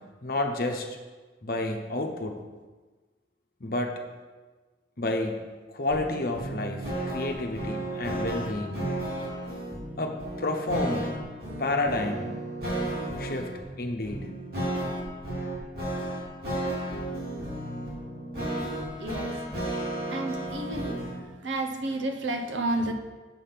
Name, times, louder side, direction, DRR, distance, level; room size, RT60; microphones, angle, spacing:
voice 1, 0.2-1.0 1.4-2.4 3.6-4.0 5.0-8.9 10.0-11.2 11.6-12.3 13.2-14.3, left 2 dB, 50° left, 3 dB, 0.9 m, -30 dB
sound 1, 5.9-21.2, right 1 dB, 50° right, 2.9 m, -33 dB
voice 2, 19.0-19.3 20.1-21.0 21.4-22.9, right 2 dB, 80° right, 5 dB, 0.8 m, -30 dB
7.8 x 5.3 x 5.8 m, 1.3 s
head